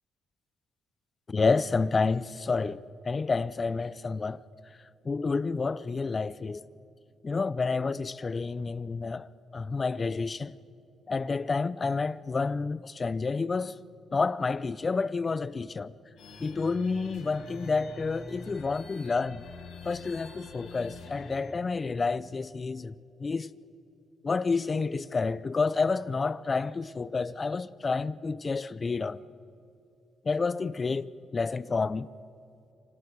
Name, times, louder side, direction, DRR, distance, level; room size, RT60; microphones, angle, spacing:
voice 1, 1.3-4.4 5.0-6.6 7.2-9.3 9.5-10.5 11.1-13.8 14.1-15.9 16.4-19.4 19.8-22.9 23.2-23.5 24.2-29.2 30.2-32.1, left 4 dB, 30° left, 0.6 m, -29 dB
sound 1, 16.2-21.4, left 2 dB, 75° left, 7.6 m, -46 dB
27.5 x 26.0 x 4.7 m
cardioid pair, 90°, 0 cm